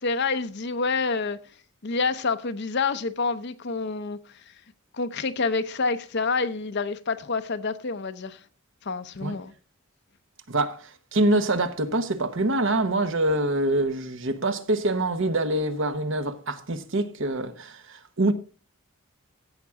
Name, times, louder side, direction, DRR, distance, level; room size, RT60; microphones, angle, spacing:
voice 1, 0.0-1.4 1.8-4.4 4.9-8.4 8.8-9.5, left 4 dB, 50° left, 0.7 m, -28 dB
voice 2, 10.5-18.3, right 2 dB, 60° right, 1.1 m, -25 dB
15.0 x 5.9 x 3.6 m
head